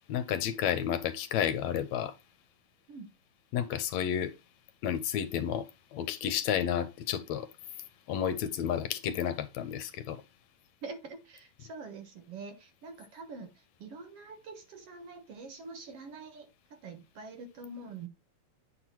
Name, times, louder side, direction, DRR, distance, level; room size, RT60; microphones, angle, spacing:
voice 1, 0.1-2.1 3.5-4.3 4.8-5.6 5.9-7.5 8.1-10.2, left 9 dB, 75° left, 2.0 m, -31 dB
voice 2, 10.8-18.1, right 4 dB, 60° right, 2.1 m, -45 dB
9.3 x 6.0 x 2.9 m
omnidirectional pair, 3.3 m